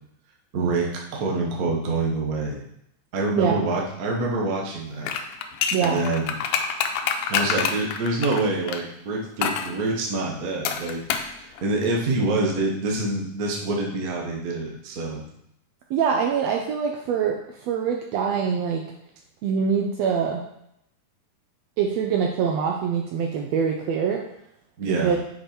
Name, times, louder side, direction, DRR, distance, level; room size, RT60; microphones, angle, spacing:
voice 1, 0.5-2.6 3.1-5.1 5.8-6.4 7.3-11.0 11.3-15.2 24.8-25.1, right 2 dB, 60° right, -1 dB, 0.9 m, -26 dB
sound 1, 5.0-8.8 9.4-9.7 10.7-11.3 11.6-11.7, left 7 dB, 80° left, 2.0 m, -26 dB
voice 2, 15.9-17.3 17.6-18.8 19.4-20.4 21.8-24.2 24.8-25.2, right 6 dB, 80° right, 1 dB, 1.6 m, -24 dB
6.7 x 5.3 x 4.4 m, 0.77 s
omnidirectional pair, 3.5 m